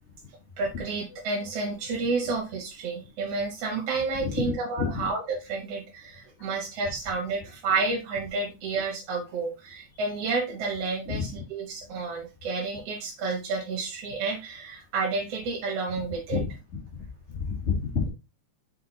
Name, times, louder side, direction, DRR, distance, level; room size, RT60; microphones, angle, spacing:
voice 1, 0.6-16.4, right 4 dB, 60° right, -1 dB, 2.1 m, -30 dB
voice 2, 4.1-5.0 11.1-11.3 16.3-16.5 17.3-18.1, left 5 dB, 50° left, -2 dB, 0.8 m, -29 dB
5.6 x 5.1 x 3.9 m, 0.27 s
omnidirectional pair, 3.4 m